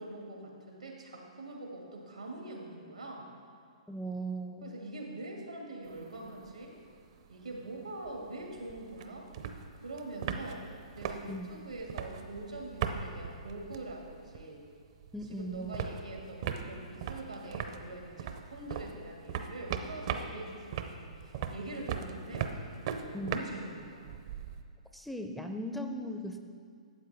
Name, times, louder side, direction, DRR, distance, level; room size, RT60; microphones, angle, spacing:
voice 1, 0.0-3.3 4.6-6.8 7.3-9.3 9.7-10.6 10.9-14.6 15.3-24.1, right 2 dB, 90° right, 0 dB, 2.0 m, -44 dB
voice 2, 3.9-4.6 11.3-11.5 15.1-15.7 23.1-23.4 24.9-26.4, right 1 dB, ahead, 5 dB, 0.5 m, -38 dB
sound 1, 5.9-6.6 6.9-7.0 7.2-14.6 14.9-24.6, right 7 dB, 50° right, 0.7 m, -39 dB
12.5 x 7.8 x 3.5 m, 2.2 s
figure-of-eight pair, 120°, 4 cm